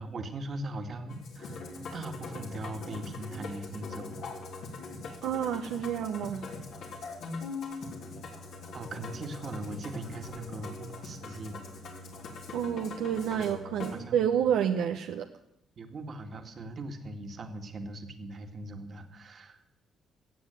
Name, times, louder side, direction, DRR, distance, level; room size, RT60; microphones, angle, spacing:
voice 1, 0.0-1.6 1.9-4.2 8.7-11.6 13.4-13.5 13.9-14.5 15.8-19.7, right 2 dB, 50° right, 6 dB, 2.1 m, -40 dB
Musical instrument, 1.1-14.0, left 3 dB, 75° left, 3.3 m, -42 dB
voice 2, 5.2-6.6 12.5-15.3, right 9 dB, 80° right, 6 dB, 0.8 m, -29 dB
16.5 x 7.4 x 9.0 m, 0.85 s
supercardioid pair, 75°, 0 cm